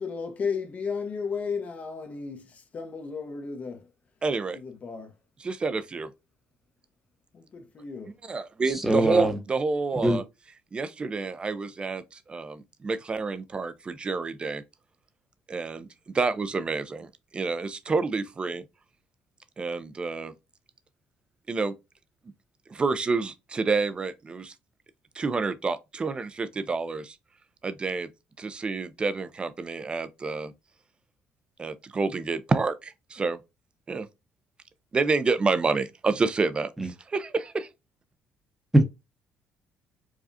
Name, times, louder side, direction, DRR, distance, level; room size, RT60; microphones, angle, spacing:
voice 1, 0.0-3.9 4.5-5.1 7.3-8.2, left 5 dB, 40° left, 0.9 m, -34 dB
voice 2, 4.2-4.6 5.4-6.1 8.3-10.2 10.7-14.6 15.5-18.6 19.6-20.3 21.5-21.7 22.7-24.5 25.2-27.2 27.6-28.1 28.4-30.5 31.6-33.4 33.9-34.1 34.9-36.7 37.1-37.7, right 4 dB, 30° right, 0.5 m, -28 dB
voice 3, 8.7-9.4 10.0-10.2 36.8-36.9 38.7-38.8, right 1 dB, 5° right, 0.9 m, -21 dB
4.9 x 2.3 x 2.6 m
cardioid pair, 100°, 4 cm